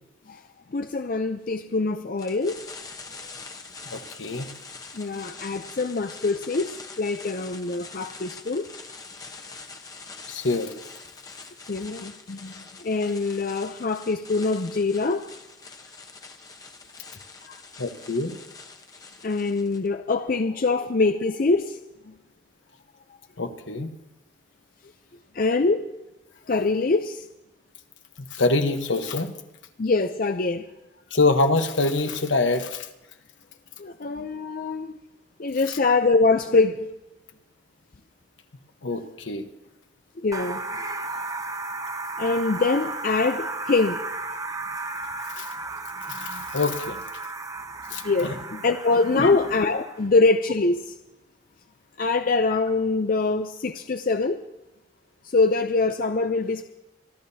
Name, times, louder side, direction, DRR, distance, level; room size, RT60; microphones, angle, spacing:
voice 1, 0.7-2.6 4.9-8.7 11.7-12.5 12.8-15.3 17.5-17.6 19.2-21.8 22.1-22.2 25.3-25.9 26.5-27.3 29.8-30.6 33.8-34.9 35.4-36.9 40.2-40.8 42.2-44.0 46.1-46.5 48.0-50.9 52.0-54.4 55.3-56.6, left 3 dB, 45° left, 8 dB, 0.5 m, -24 dB
sound 1, 2.2-19.9, left 4 dB, 20° left, 0.9 m, -44 dB
voice 2, 3.9-4.5 10.3-10.7 17.8-18.3 23.4-23.9 28.3-29.3 31.1-32.9 38.8-39.4 45.3-45.5 46.1-47.0 47.9-48.3 49.2-49.4, left 3 dB, 75° left, 6 dB, 1.1 m, -25 dB
sound 2, 40.3-50.0, right 3 dB, 20° right, 0.6 m, -34 dB
26.5 x 12.0 x 2.8 m, 0.96 s
head